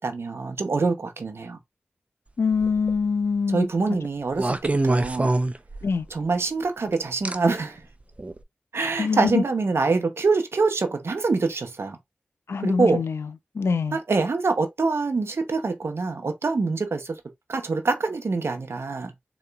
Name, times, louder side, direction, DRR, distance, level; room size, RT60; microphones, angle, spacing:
voice 1, 0.0-1.6 3.5-5.3 6.1-7.8 8.7-12.0 12.6-13.0 13.9-17.2 17.5-19.1, right 4 dB, 75° right, 0.7 m, -25 dB
voice 2, 2.4-3.7 5.8-6.1 9.0-9.4 12.5-13.3 13.5-14.0, left 5 dB, 80° left, 0.4 m, -24 dB
sound 1, 2.5-3.0 4.3-6.1 7.2-7.4 8.2-8.4, right 2 dB, 30° right, 0.4 m, -24 dB
3.8 x 3.0 x 2.3 m
cardioid pair, 45°, 4 cm